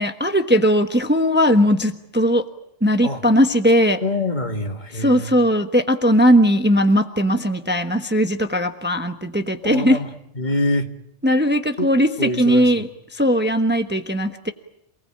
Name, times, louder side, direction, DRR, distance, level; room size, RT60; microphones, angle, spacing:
voice 1, 0.0-2.5 2.8-4.0 4.9-10.0 11.2-14.5, equal, 10° right, 7 dB, 1.1 m, -18 dB
voice 2, 4.0-5.3 9.6-10.1 10.3-10.9 11.8-11.9 12.2-12.7, left 2 dB, 40° left, 6 dB, 1.8 m, -24 dB
28.0 x 19.5 x 8.7 m, 0.75 s
omnidirectional pair, 1.2 m